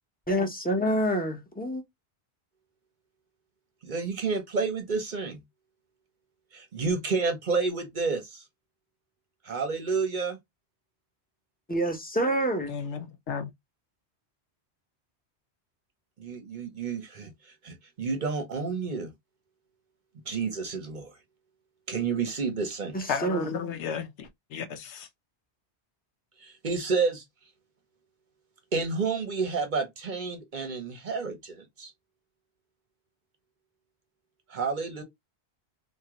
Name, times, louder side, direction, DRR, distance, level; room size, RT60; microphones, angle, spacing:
voice 1, 0.3-1.8 11.7-12.7 22.9-23.5, right 1 dB, 10° left, 0.6 m, -27 dB
voice 2, 3.8-5.4 6.5-8.4 9.4-10.4 16.2-19.1 20.3-21.1 21.9-23.0 26.4-27.2 28.7-31.9 34.5-35.0, right 4 dB, 50° right, 0.8 m, -30 dB
voice 3, 12.7-13.5 23.1-25.1, left 7 dB, 85° left, 1.0 m, -34 dB
3.6 x 2.1 x 2.9 m
omnidirectional pair, 1.1 m